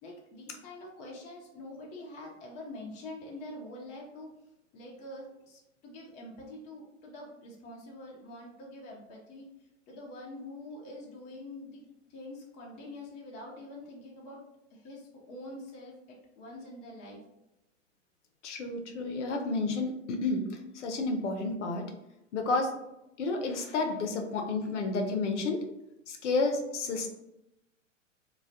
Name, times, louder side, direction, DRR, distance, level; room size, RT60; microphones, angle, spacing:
voice 1, 0.0-4.3 4.7-9.5 9.9-11.8 12.1-14.4 14.7-17.2, left 1 dB, 20° left, -2 dB, 0.4 m, -45 dB
voice 2, 18.4-20.4 20.7-21.9 22.3-22.7 23.2-25.6 26.1-27.1, left 3 dB, 65° left, 4 dB, 0.6 m, -30 dB
2.2 x 2.1 x 2.7 m, 0.88 s
figure-of-eight pair, 100°, 38 cm